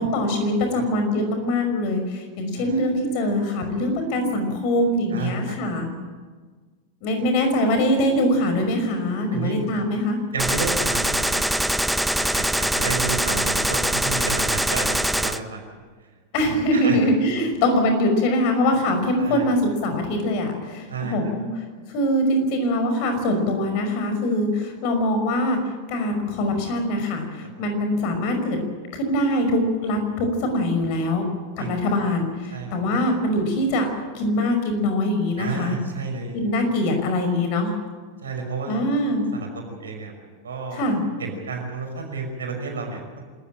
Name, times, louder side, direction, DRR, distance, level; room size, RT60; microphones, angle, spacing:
voice 1, 0.0-5.9 7.0-10.2 16.3-21.6 21.9-25.6 25.9-28.6 28.9-31.2 31.6-33.9 34.1-35.8 36.3-37.7 38.7-39.3 40.7-41.0, left 1 dB, 45° left, 6 dB, 5.5 m, -23 dB
voice 2, 2.5-2.9 5.1-5.6 9.3-9.6 10.3-11.6 12.2-15.7 16.7-17.0 19.2-19.5 20.9-21.2 31.6-31.8 32.5-32.7 35.4-36.4 38.2-38.9 39.3-40.1 40.4-40.9 41.2-43.2, right 4 dB, 70° right, 3 dB, 5.6 m, -31 dB
Gunshot gunfire, 10.4-15.4, right 1 dB, 5° right, 0.8 m, -23 dB
27.0 x 14.0 x 9.0 m, 1.5 s
figure-of-eight pair, 90°, 0 cm